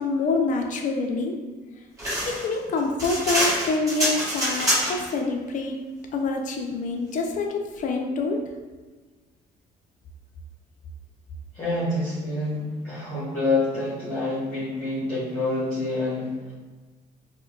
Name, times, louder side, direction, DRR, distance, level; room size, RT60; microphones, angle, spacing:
voice 1, 0.0-1.4 2.3-5.8 6.1-8.4, left 3 dB, 50° left, 2 dB, 0.5 m, -26 dB
sound 1, 2.0-5.1, equal, 20° right, 1.4 m, -25 dB
voice 2, 11.5-16.5, left 2 dB, 15° left, -10 dB, 1.1 m, -27 dB
4.3 x 2.2 x 2.4 m, 1.3 s
cardioid pair, 110°, 17 cm